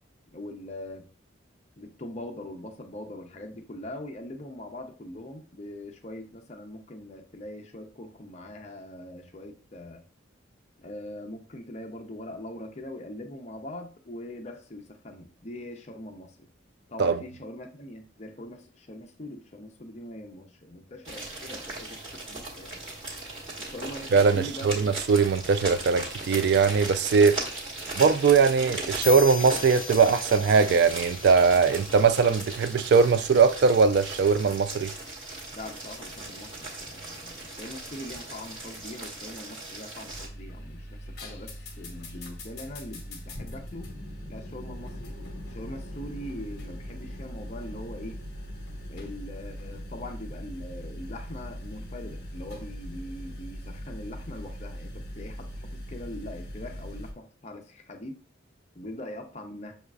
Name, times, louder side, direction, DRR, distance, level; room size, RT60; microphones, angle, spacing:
voice 1, 0.3-1.1 1.8-10.0 10.8-16.5 16.9-22.8 23.6-24.7 35.5-43.9 44.3-45.1 45.5-48.2 48.9-58.2 58.8-59.7, left 1 dB, 35° left, 0.6 m, -42 dB
sound 1, 21.0-40.3, right 2 dB, 25° right, 1.3 m, -38 dB
voice 2, 24.1-27.4 28.0-34.9, right 5 dB, 55° right, 0.3 m, -21 dB
sound 2, 29.0-32.6, left 6 dB, 75° left, 0.6 m, -40 dB
sound 3, 40.1-57.1, equal, 55° left, 0.9 m, -40 dB
6.3 x 2.4 x 2.3 m
head